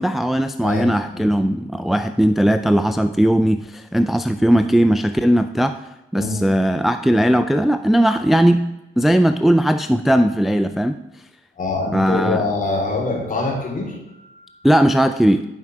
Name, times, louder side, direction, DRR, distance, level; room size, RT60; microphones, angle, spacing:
voice 1, 0.0-5.8 6.1-8.6 9.0-11.0 11.9-12.5 14.6-15.4, equal, ahead, 9 dB, 0.3 m, -18 dB
voice 2, 0.6-1.4 6.1-6.4 11.6-14.5, left 3 dB, 45° left, -1 dB, 3.6 m, -25 dB
11.0 x 5.5 x 4.7 m, 0.93 s
cardioid pair, 90°, 20 cm